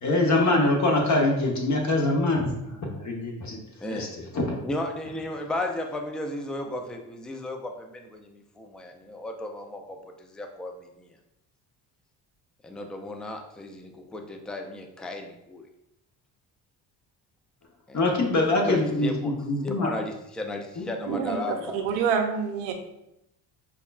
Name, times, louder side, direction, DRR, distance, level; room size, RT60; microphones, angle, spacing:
voice 1, 0.0-3.6 3.9-4.6 17.9-19.9 20.8-20.9, left 2 dB, 40° left, 1 dB, 0.9 m, -24 dB
voice 2, 4.6-11.1 12.6-15.6 17.9-18.0 18.5-19.3 19.6-21.8, left 1 dB, ahead, 4 dB, 0.3 m, -34 dB
voice 3, 21.1-22.7, right 6 dB, 85° right, 5 dB, 0.6 m, -27 dB
5.1 x 2.3 x 2.3 m, 0.84 s
supercardioid pair, 65°, 46 cm